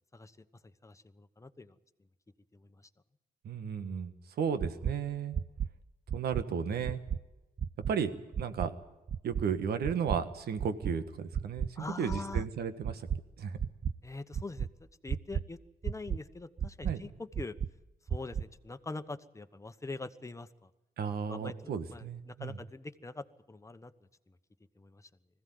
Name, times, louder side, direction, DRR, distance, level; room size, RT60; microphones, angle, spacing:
voice 1, 0.1-1.7 2.5-2.8 11.8-12.5 14.0-14.7 15.0-15.6 15.8-17.5 18.1-20.7 21.3-23.9 24.3-24.4 24.8-25.1, left 3 dB, 20° left, 10 dB, 1.1 m, -44 dB
voice 2, 3.4-5.4 6.1-7.0 7.9-8.1 8.4-8.7 9.2-13.1 13.4-13.6 16.8-17.0 21.0-22.6, right 7 dB, 90° right, 10 dB, 1.5 m, -34 dB
sound 1, 4.6-4.9 5.3-5.7 6.1-6.4 6.8-7.2 7.6-7.9 8.3-8.7 9.1-9.4 9.8-10.2 10.6-10.9 11.3-11.7 12.1-12.4 12.8-13.2 13.6-13.9 14.3-14.7 15.1-15.4 15.8-16.2 16.6-16.9 17.3-17.7 18.1-18.4, right 7 dB, 40° right, 0.7 m, -32 dB
20.5 x 15.5 x 9.5 m, 1.0 s
cardioid pair, 85°, 16 cm